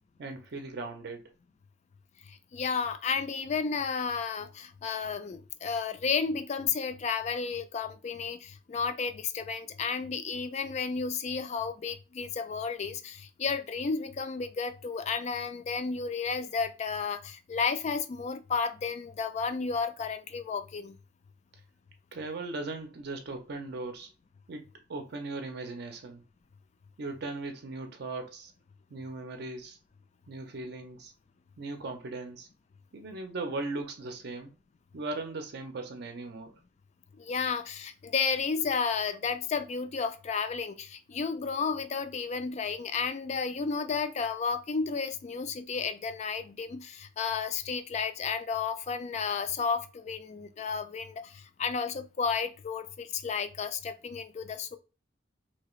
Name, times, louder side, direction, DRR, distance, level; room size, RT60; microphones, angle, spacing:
voice 1, 0.2-1.3 22.1-24.1 24.5-26.2 27.0-28.5 28.9-29.8 30.3-31.1 31.6-32.5 32.9-34.5 34.9-36.6, right 3 dB, 60° right, 0.5 m, -38 dB
voice 2, 2.3-21.0 37.2-54.8, left 5 dB, 40° left, 0.3 m, -32 dB
2.8 x 2.4 x 3.0 m
head